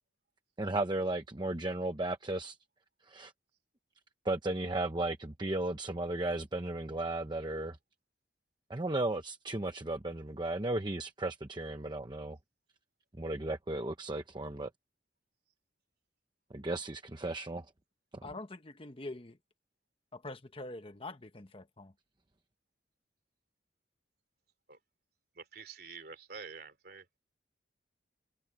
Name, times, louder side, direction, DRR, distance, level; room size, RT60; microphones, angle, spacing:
voice 1, 0.6-2.6 3.1-3.3 4.2-7.8 8.7-12.4 13.2-14.7 16.5-17.6, right 2 dB, 25° right, 1.0 m, -35 dB
voice 2, 18.2-19.4 20.1-21.9, left 2 dB, 30° left, 1.2 m, -44 dB
voice 3, 25.3-27.0, right 5 dB, 60° right, 3.0 m, -47 dB
head